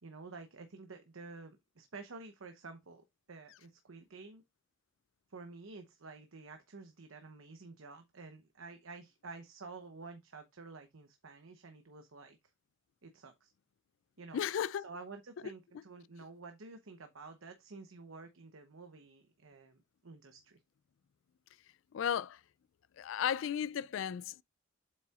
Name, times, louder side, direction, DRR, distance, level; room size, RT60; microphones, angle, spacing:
voice 1, 0.0-4.4 5.3-12.4 13.0-13.5 14.2-14.4 14.8-20.6, right 3 dB, 85° right, 0.9 m, -50 dB
voice 2, 14.3-14.8 21.9-22.4 23.0-24.4, left 9 dB, 70° left, 0.3 m, -34 dB
8.0 x 5.5 x 2.4 m
head